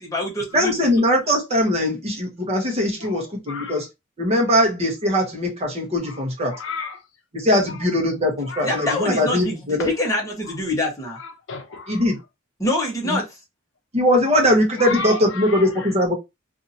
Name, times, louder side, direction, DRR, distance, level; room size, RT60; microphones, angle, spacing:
voice 1, 0.0-0.7 8.6-9.5 9.8-11.2 12.6-13.3, left 1 dB, 15° left, 1.1 m, -25 dB
voice 2, 0.5-3.9 4.2-6.6 7.3-9.9 11.9-12.2 13.0-13.2 13.9-16.1, left 1 dB, 30° right, 1.0 m, -21 dB
voice 3, 6.5-7.0 8.5-8.9 9.8-9.9 11.2-12.0 14.8-15.6, left 4 dB, 65° left, 0.6 m, -31 dB
2.8 x 2.6 x 2.6 m
head